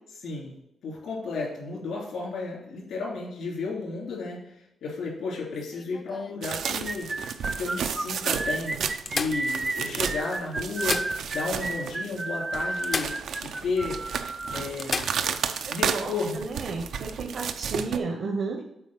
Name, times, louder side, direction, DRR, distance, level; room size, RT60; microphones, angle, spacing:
voice 1, 0.2-0.5 0.8-7.3 7.6-8.8 9.1-14.0 14.5-15.1 15.7-16.4, left 4 dB, 85° left, -3 dB, 3.1 m, -33 dB
sound 1, 5.5-7.2 7.8-7.9 8.2-8.3 9.1-10.1 10.6-11.7 11.9-12.0 12.8-13.7 14.0-14.1 14.8-15.4 17.3-17.5, left 4 dB, 35° left, 0.5 m, -34 dB
sound 2, 6.4-12.2 12.5-18.0, right 7 dB, 80° right, 0.5 m, -32 dB
sound 3, 6.6-14.7, right 2 dB, 20° right, 0.4 m, -32 dB
voice 2, 15.7-18.6, right 4 dB, 60° right, 3 dB, 0.9 m, -33 dB
8.1 x 4.5 x 5.7 m, 0.84 s
cardioid pair, 125°, 0 cm